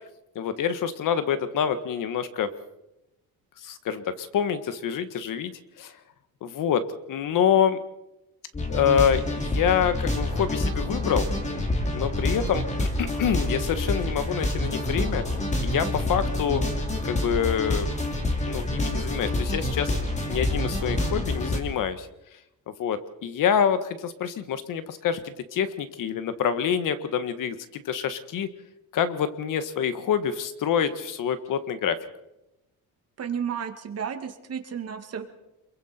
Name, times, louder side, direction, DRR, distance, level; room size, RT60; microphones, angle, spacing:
voice 1, 0.3-2.5 3.6-5.5 5.8-5.9 6.4-7.8 8.7-11.3 11.9-15.2 15.6-16.7 17.0-17.9 18.5-19.9 20.3-22.1 22.7-28.5 28.9-32.0, left 8 dB, 60° left, 11 dB, 1.6 m, -26 dB
sound 1, 8.5-21.6, left 1 dB, 20° left, 3.1 m, -27 dB
voice 2, 33.2-35.2, right 7 dB, 45° right, 6 dB, 2.2 m, -32 dB
28.0 x 22.5 x 4.4 m, 0.94 s
cardioid pair, 145°, 35 cm